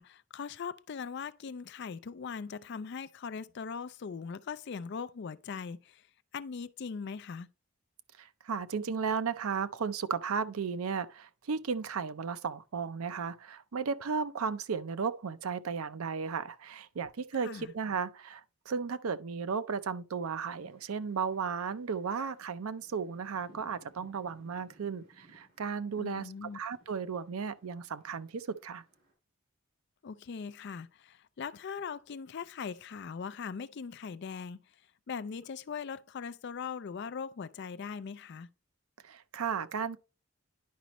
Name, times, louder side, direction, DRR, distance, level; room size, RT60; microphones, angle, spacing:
voice 1, 0.0-6.0 6.3-7.5 17.4-17.7 26.0-26.6 30.0-34.6 35.1-38.5, left 6 dB, 50° left, 0.4 m, -40 dB
voice 2, 8.2-28.8 39.0-40.0, right 5 dB, 80° right, 0.5 m, -35 dB
sound 1, 20.2-29.1, right 1 dB, 50° right, 4.4 m, -63 dB
10.5 x 5.1 x 3.0 m
head